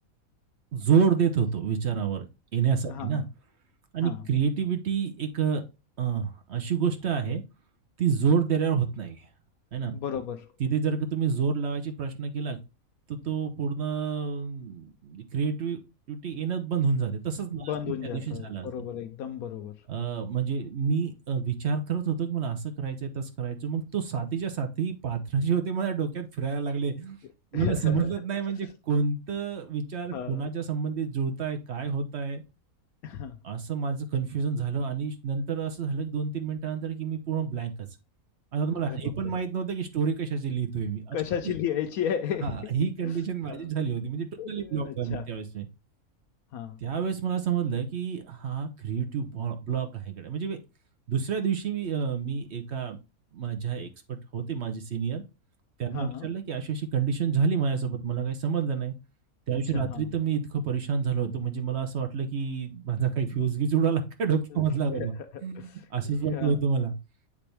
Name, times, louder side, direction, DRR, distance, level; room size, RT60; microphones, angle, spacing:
voice 1, 0.7-2.3 2.5-3.2 3.9-5.6 6.0-7.4 8.0-9.2 9.7-9.9 10.6-12.6 13.1-15.8 16.1-17.7 18.1-18.7 19.9-27.2 27.5-32.4 33.4-37.7 38.5-41.2 42.4-45.7 46.8-50.6 51.1-53.0 53.3-55.2 55.8-58.9 59.5-65.1 65.4-67.0, right 6 dB, 50° right, 1.0 m, -28 dB
voice 2, 2.8-3.2 4.0-4.2 9.9-10.5 17.6-19.9 27.5-28.1 30.1-30.5 33.0-33.4 38.8-39.3 41.1-42.7 43.0-43.2 43.5-43.7 44.4-45.3 46.5-46.8 55.9-56.3 59.5-60.1 64.5-64.7 64.9-66.6, left 9 dB, 80° left, 1.0 m, -34 dB
8.5 x 3.4 x 3.3 m
omnidirectional pair, 1.5 m